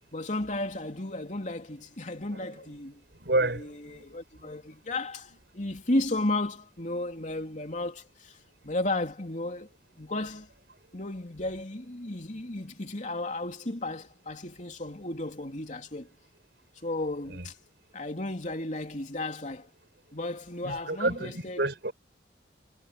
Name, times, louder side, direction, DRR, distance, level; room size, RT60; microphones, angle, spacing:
voice 1, 0.1-3.0 3.6-8.4 8.6-10.5 10.9-16.1 16.8-17.5 17.9-19.7 20.1-21.6, left 2 dB, 45° left, 3.3 m, -34 dB
voice 2, 2.3-2.7 3.2-4.2 17.3-17.5 20.6-21.9, right 2 dB, 65° right, 5.4 m, -30 dB
head